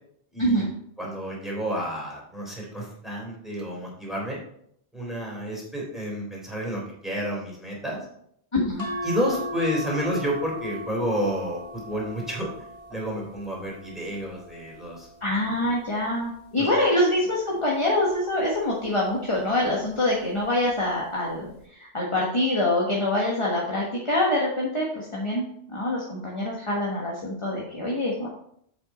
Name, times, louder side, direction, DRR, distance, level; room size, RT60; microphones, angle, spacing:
voice 1, 0.3-0.6 1.0-4.4 4.9-8.0 9.0-12.5 12.9-15.1 16.6-16.7, equal, ahead, -3 dB, 3.3 m, -30 dB
voice 2, 8.5-8.9 15.2-28.3, left 1 dB, 25° left, -3 dB, 1.4 m, -25 dB
sound 1, 8.8-15.4 16.0-17.4 18.7-19.1 19.4-19.5, equal, 30° right, 2.5 m, -38 dB
7.7 x 7.1 x 4.2 m, 0.69 s
omnidirectional pair, 1.2 m